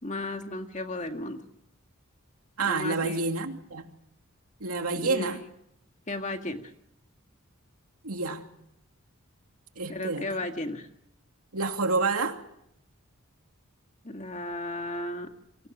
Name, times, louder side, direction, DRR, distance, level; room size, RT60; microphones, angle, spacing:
voice 1, 0.0-1.4 2.6-3.2 5.0-5.4 6.1-6.7 9.9-10.9 14.0-15.3, left 2 dB, 35° left, 5 dB, 1.9 m, -34 dB
voice 2, 2.6-3.9 4.6-5.4 8.0-8.5 9.8-10.3 11.5-12.4, right 3 dB, 90° right, 5 dB, 2.7 m, -28 dB
28.5 x 24.5 x 6.2 m, 0.78 s
head